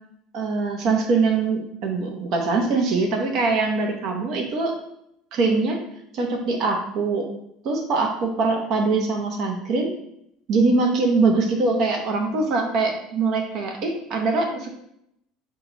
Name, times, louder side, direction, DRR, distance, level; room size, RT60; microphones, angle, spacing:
voice 1, 0.3-4.7 5.3-5.8 6.1-7.3 7.6-9.9 10.5-14.7, right 3 dB, 55° right, 2 dB, 0.9 m, -23 dB
4.7 x 2.4 x 3.8 m, 0.75 s
supercardioid pair, 115°, 0 cm